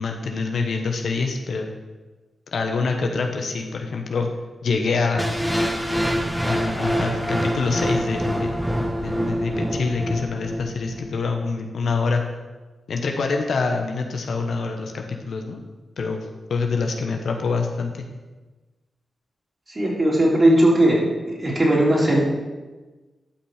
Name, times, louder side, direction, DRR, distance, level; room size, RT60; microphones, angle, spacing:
voice 1, 0.0-1.7 2.5-4.3 4.6-5.3 6.5-8.7 9.0-12.2 12.9-15.6 16.0-18.1, left 4 dB, 75° left, 3 dB, 1.0 m, -26 dB
sound 1, 5.2-11.2, equal, 5° right, 1.5 m, -25 dB
voice 2, 19.7-21.0 21.3-22.2, right 1 dB, 35° right, -4 dB, 3.8 m, -18 dB
11.5 x 6.1 x 4.9 m, 1.2 s
cardioid pair, 50°, 0 cm